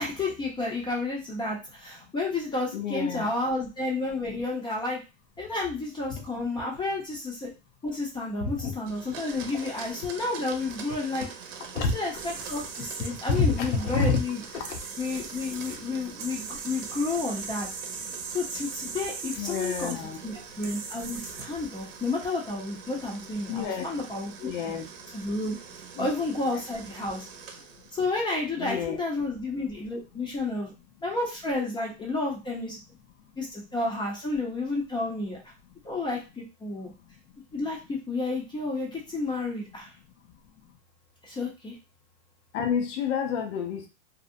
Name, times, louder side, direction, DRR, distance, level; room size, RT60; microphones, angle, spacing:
voice 1, 0.0-5.0 5.4-7.5 7.8-11.3 11.7-14.4 15.0-17.7 18.3-20.0 20.2-24.3 24.7-24.8 25.1-25.6 26.0-27.3 27.9-30.7 31.0-32.8 33.4-35.5 35.8-36.9 37.5-40.0 41.2-41.8, left 2 dB, 10° left, -1 dB, 0.5 m, -31 dB
voice 2, 2.7-3.3 6.1-6.2 8.4-8.8 9.5-9.6 11.7-11.9 13.3-14.2 14.5-14.8 19.4-20.2 23.5-23.9 24.4-24.8 26.0-26.1 26.5-26.6 28.6-29.0 42.5-43.9, left 5 dB, 75° left, 4 dB, 0.6 m, -28 dB
Domestic sounds home sounds, 8.9-28.1, right 6 dB, 85° right, 0.7 m, -44 dB
sound 1, 12.1-22.1, right 5 dB, 45° right, 0.5 m, -40 dB
2.7 x 2.0 x 2.5 m, 0.28 s
supercardioid pair, 140°, 37 cm